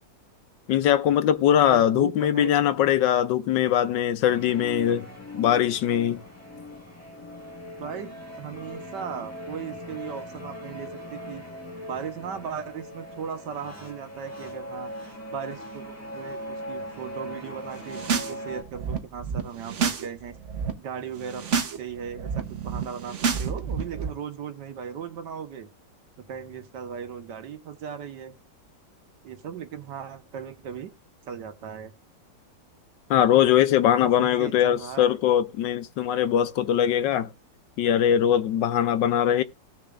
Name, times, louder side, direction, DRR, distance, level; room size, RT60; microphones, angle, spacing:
voice 1, 0.7-5.1 5.3-6.2 33.1-37.3 37.8-39.4, left 10 dB, 75° left, 1.3 m, -21 dB
voice 2, 1.7-2.5 7.7-8.1 8.4-11.4 11.9-14.9 15.3-20.4 20.8-25.7 26.3-28.3 29.2-30.9 31.3-31.9 34.0-35.2, right 7 dB, 70° right, 1.6 m, -37 dB
sound 1, 4.3-18.6, left 1 dB, 10° left, 1.7 m, -39 dB
sound 2, 17.8-18.3 18.6-20.1 20.3-20.7 21.2-21.8 22.0-24.1, right 6 dB, 45° right, 1.2 m, -29 dB
17.0 x 6.7 x 2.5 m
omnidirectional pair, 2.0 m